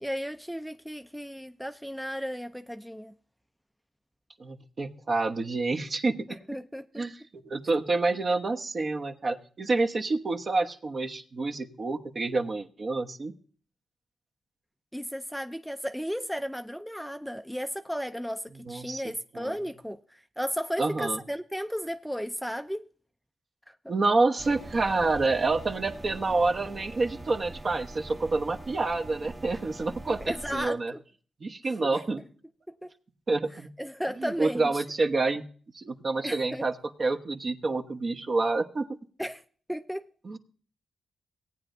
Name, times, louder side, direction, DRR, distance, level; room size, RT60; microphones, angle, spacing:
voice 1, 0.0-3.1 6.3-7.1 14.9-22.8 23.7-23.9 30.1-31.0 31.6-32.0 32.7-32.9 33.8-34.8 36.2-36.7 39.2-39.4 39.7-40.1, equal, ahead, 0.5 m, -35 dB
voice 2, 4.4-6.4 7.0-13.3 18.7-19.0 19.3-19.5 20.8-21.2 23.9-30.2 30.5-30.9 31.4-32.2 33.3-33.7 34.2-35.5 35.7-36.7 37.0-38.9 40.2-40.4, right 3 dB, 50° right, 1.2 m, -28 dB
sound 1, 24.4-30.7, right 2 dB, 25° right, 1.0 m, -43 dB
18.0 x 9.1 x 2.7 m
cardioid pair, 70°, 0 cm